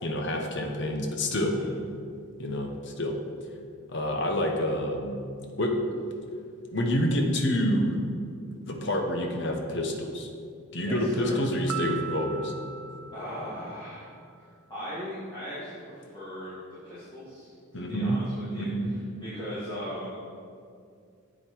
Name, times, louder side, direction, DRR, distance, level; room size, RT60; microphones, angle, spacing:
voice 1, 0.0-1.6 2.4-3.2 3.9-5.2 5.6-5.9 6.7-8.0 8.7-10.3 10.7-12.5 17.7-18.2 18.6-18.9, equal, 55° left, 3 dB, 1.0 m, -27 dB
voice 2, 10.8-11.4 13.1-14.1 14.4-14.5 14.7-16.6 16.8-18.7 19.2-20.2, equal, 20° left, -13 dB, 2.2 m, -38 dB
Piano, 11.7-14.3, right 9 dB, 85° right, 0.5 m, -39 dB
8.0 x 7.9 x 4.6 m, 2.3 s
head